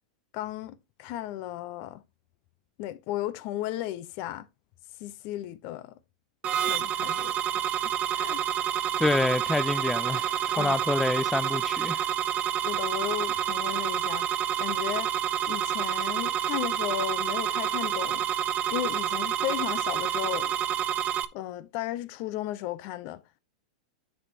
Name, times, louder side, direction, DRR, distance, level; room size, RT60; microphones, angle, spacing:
voice 1, 0.3-2.0 2.8-4.4 5.0-5.9 6.4-7.6 8.2-8.4 10.5-10.8 12.6-14.3 14.6-15.1 15.5-18.2 18.7-20.5 21.3-23.2, left 13 dB, 50° left, 0.8 m, -35 dB
sound 1, 6.4-21.2, right 10 dB, 35° right, 0.7 m, -28 dB
voice 2, 9.0-12.1, left 2 dB, 5° left, 0.4 m, -27 dB
9.7 x 5.6 x 2.9 m
hypercardioid pair, 115°, 4 cm